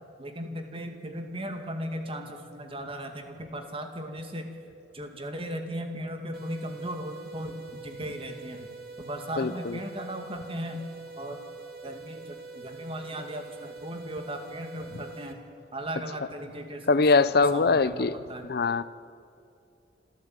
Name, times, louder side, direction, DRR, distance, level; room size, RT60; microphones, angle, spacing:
voice 1, 0.2-4.5 4.9-8.7 9.0-10.8 11.2-11.4 11.8-15.4 15.7-18.4, equal, 30° right, 5 dB, 2.3 m, -37 dB
sound 1, 6.3-15.3, right 3 dB, 55° right, 2.2 m, -45 dB
voice 2, 9.4-9.8 14.9-15.0 16.9-18.8, left 4 dB, 60° left, 16 dB, 0.6 m, -23 dB
25.5 x 13.5 x 9.0 m, 2.5 s
head